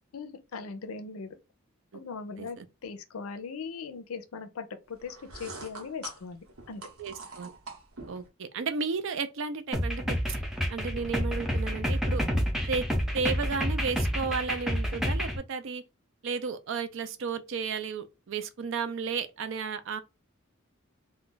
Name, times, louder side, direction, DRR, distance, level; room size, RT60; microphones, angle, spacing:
voice 1, 0.1-1.4 1.9-6.8, left 5 dB, 85° left, 0.5 m, -39 dB
sound 1, 5.0-8.3, right 3 dB, 90° right, 0.9 m, -45 dB
voice 2, 7.0-7.5 8.1-10.4 10.7-12.2 12.7-12.8 13.1-15.8 16.2-20.0, right 5 dB, 60° right, 0.4 m, -33 dB
sound 2, 9.7-15.4, equal, ahead, 0.5 m, -29 dB
2.4 x 2.2 x 3.8 m
head